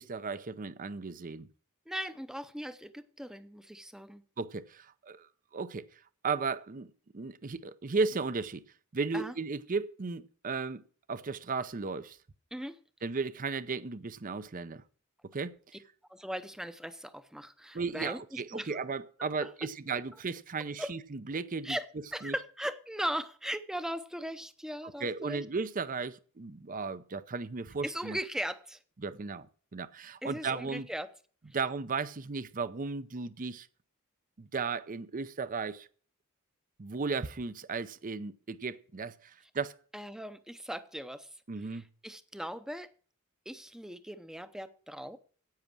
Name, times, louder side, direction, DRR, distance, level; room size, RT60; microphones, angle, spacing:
voice 1, 0.0-1.5 4.4-5.3 5.5-5.9 6.2-8.6 8.9-10.8 11.1-12.2 13.0-14.8 15.3-15.5 17.7-21.8 22.2-22.3 25.0-28.2 29.0-29.5 29.7-30.9 31.5-33.7 34.4-35.9 36.8-39.7 41.5-41.8, right 4 dB, 40° right, 0.6 m, -35 dB
voice 2, 1.9-4.2 9.1-9.3 12.5-12.8 16.1-18.7 19.2-19.5 20.8-20.9 21.6-25.4 27.8-28.8 30.2-31.1 39.9-42.9 43.5-45.2, equal, 5° right, 0.7 m, -39 dB
10.5 x 8.5 x 6.1 m
head